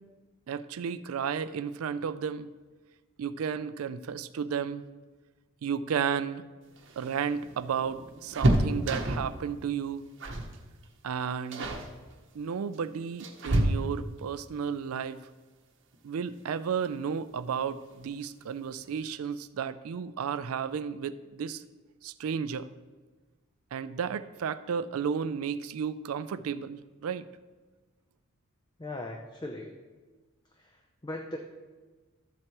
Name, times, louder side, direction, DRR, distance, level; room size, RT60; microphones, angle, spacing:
voice 1, 0.5-2.5 3.2-4.8 5.6-6.4 7.0-10.0 11.0-11.7 12.3-15.2 16.0-21.6 22.0-22.7 23.7-27.3, right 7 dB, 80° right, 13 dB, 0.4 m, -33 dB
sound 1, 6.7-9.4 10.2-10.6 10.8-11.1 11.5-11.9 12.7-14.2 15.9-16.0 16.4-16.5 17.7-18.1 18.4-18.5 18.8-19.0, right 1 dB, 55° right, 0.9 m, -29 dB
voice 2, 28.8-29.7 30.6-31.4, left 1 dB, 20° left, 2 dB, 0.5 m, -39 dB
13.0 x 7.8 x 3.0 m, 1.3 s
head